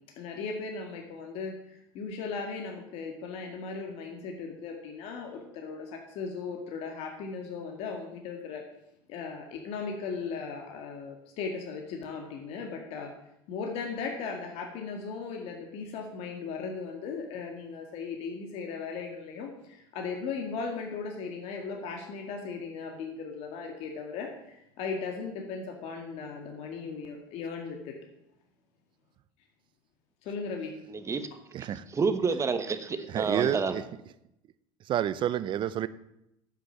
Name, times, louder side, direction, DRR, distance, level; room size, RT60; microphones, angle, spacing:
voice 1, 0.2-8.7 9.1-13.1 13.5-27.9 30.2-30.7, left 5 dB, 60° left, 2 dB, 1.9 m, -37 dB
voice 2, 30.9-31.3 31.7-33.7, right 5 dB, 25° right, 9 dB, 1.2 m, -29 dB
voice 3, 31.5-31.8 33.1-33.8 34.9-35.9, right 11 dB, 45° right, 16 dB, 0.7 m, -29 dB
9.9 x 6.4 x 7.1 m, 0.82 s
supercardioid pair, 95°, 12 cm